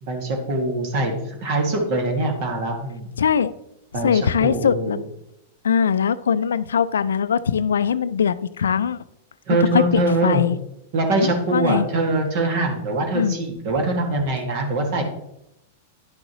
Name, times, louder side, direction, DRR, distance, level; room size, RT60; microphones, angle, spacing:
voice 1, 0.0-3.1 3.9-5.0 9.5-10.4 10.9-15.0, right 2 dB, 55° right, 2 dB, 2.0 m, -23 dB
voice 2, 3.2-3.5 4.0-5.0 5.6-9.0 9.7-10.6 11.2-11.9 13.1-13.4, left 7 dB, 85° left, 16 dB, 0.3 m, -21 dB
10.5 x 6.2 x 3.0 m, 0.81 s
hypercardioid pair, 110°, 0 cm